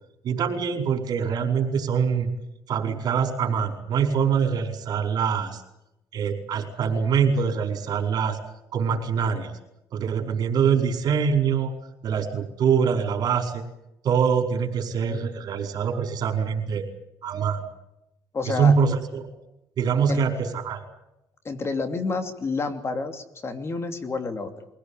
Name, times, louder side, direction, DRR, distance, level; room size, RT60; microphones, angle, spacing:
voice 1, 0.2-2.3 2.7-5.6 6.1-8.4 8.7-9.5 9.9-11.7 12.0-13.6 14.0-16.8 17.2-17.7 18.5-19.3 19.8-20.8, right 6 dB, 65° right, 4 dB, 4.8 m, -24 dB
voice 2, 18.3-18.7 20.1-20.2 21.4-24.7, left 4 dB, 35° left, 7 dB, 2.8 m, -29 dB
23.5 x 17.0 x 10.0 m, 0.87 s
cardioid pair, 105°, 7 cm